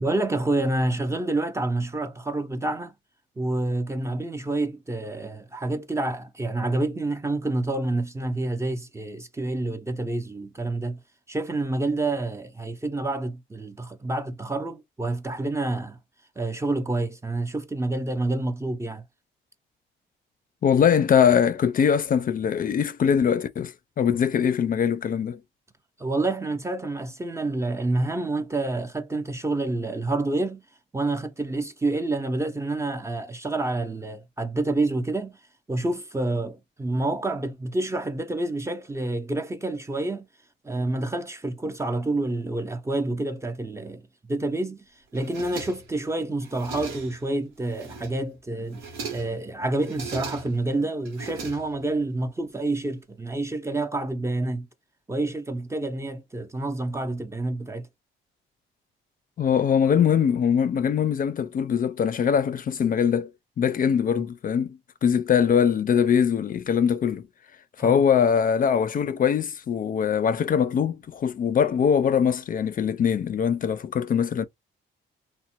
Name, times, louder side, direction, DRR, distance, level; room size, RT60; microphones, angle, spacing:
voice 1, 0.0-2.9 3.4-11.0 11.3-16.0 16.4-19.0 26.0-30.6 30.9-35.4 35.7-40.3 40.6-44.0 44.3-44.8 45.1-54.7 55.1-57.9 67.8-68.0, right 2 dB, 15° right, 0.5 m, -28 dB
voice 2, 20.6-25.4 59.4-63.3 63.6-67.3 67.8-74.4, left 7 dB, 45° left, 0.4 m, -22 dB
sound 1, 45.1-46.0 46.4-47.3 47.7-48.3 48.7-49.4 49.8-50.7 51.1-52.0, right 5 dB, 90° right, 0.9 m, -39 dB
3.0 x 2.1 x 2.9 m
cardioid pair, 90°, 20 cm